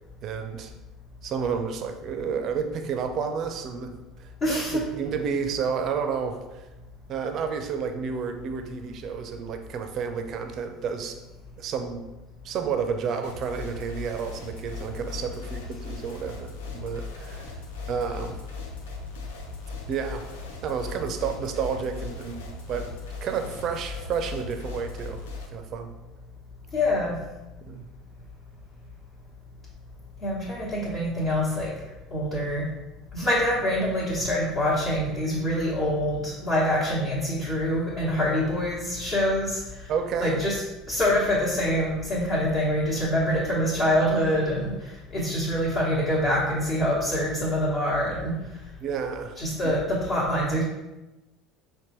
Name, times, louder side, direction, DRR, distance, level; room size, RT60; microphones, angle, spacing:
voice 1, 0.2-0.7 1.2-6.7 7.1-11.2 11.6-12.1 12.4-17.5 17.9-18.4 19.9-20.3 20.6-25.2 25.5-25.9 27.6-27.9 39.9-40.4 48.8-49.4 49.6-49.7, right 6 dB, 50° right, 7 dB, 0.4 m, -31 dB
voice 2, 4.4-4.8 26.7-27.2 30.2-31.7 32.1-32.7 33.1-39.9 40.2-40.5 40.9-48.3 49.4-50.6, equal, 40° left, -9 dB, 1.1 m, -25 dB
sound 1, 13.2-25.5, left 4 dB, 75° left, 0.5 m, -38 dB
5.2 x 2.2 x 3.0 m, 1.0 s
figure-of-eight pair, 65°, 0 cm